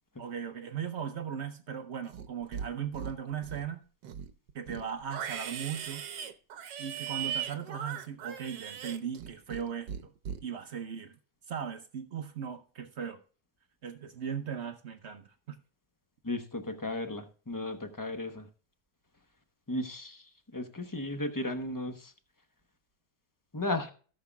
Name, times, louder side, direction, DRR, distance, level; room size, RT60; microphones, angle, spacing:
voice 1, 0.2-3.8 4.5-6.1 6.8-10.1 10.4-11.2 11.5-13.2 13.8-15.6, right 7 dB, 55° right, 0.8 m, -38 dB
Livestock farm animals working animals, 2.0-2.7 2.9-3.7 4.0-9.6 9.9-10.4, right 8 dB, 75° right, 1.4 m, -38 dB
voice 2, 16.2-18.5 19.7-22.1 23.5-23.9, left 2 dB, 20° left, 0.5 m, -35 dB
17.5 x 6.5 x 2.3 m
omnidirectional pair, 1.9 m